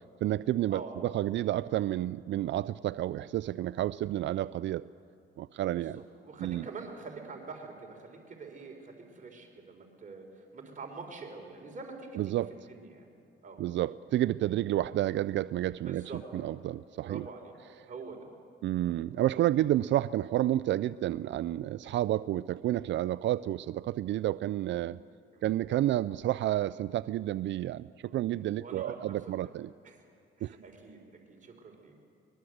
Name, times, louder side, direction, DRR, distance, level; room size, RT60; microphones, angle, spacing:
voice 1, 0.2-4.8 5.4-6.0 6.4-6.6 12.2-12.5 13.6-17.2 18.6-25.0 25.4-29.7 30.4-30.5, right 13 dB, 70° right, 16 dB, 0.4 m, -30 dB
voice 2, 5.8-12.3 12.7-13.1 13.4-13.6 15.8-16.2 17.0-17.5 17.9-18.3 18.9-19.0 25.3-25.4 28.5-29.5 29.8-30.0 30.4-31.0 31.3-32.0, right 4 dB, 40° right, 2 dB, 4.0 m, -45 dB
23.0 x 21.5 x 7.9 m, 2.7 s
cardioid pair, 90°, 20 cm